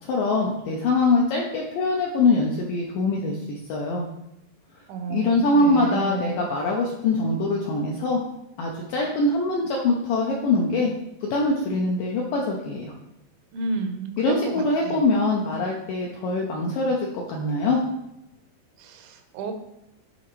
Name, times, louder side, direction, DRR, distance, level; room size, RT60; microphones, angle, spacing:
voice 1, 0.0-4.0 5.1-8.2 8.6-10.9 11.2-12.9 14.2-17.8, left 2 dB, 80° left, -1 dB, 2.0 m, -23 dB
voice 2, 4.9-6.4 13.5-15.0 18.8-19.5, right 3 dB, 80° right, 6 dB, 2.4 m, -32 dB
8.1 x 4.3 x 3.1 m, 0.84 s
omnidirectional pair, 4.6 m